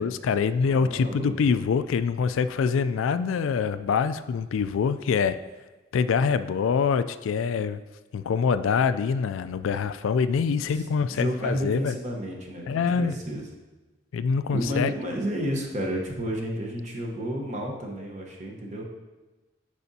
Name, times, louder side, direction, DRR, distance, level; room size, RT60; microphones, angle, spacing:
voice 1, 0.0-5.4 5.9-7.8 8.1-11.9 12.7-13.1 14.1-14.9, left 6 dB, 80° left, 12 dB, 0.3 m, -25 dB
voice 2, 0.7-1.3 10.7-10.9 11.1-12.7 12.9-13.4 14.5-18.8, equal, 35° right, 0 dB, 1.0 m, -31 dB
11.0 x 4.9 x 2.8 m, 1.2 s
head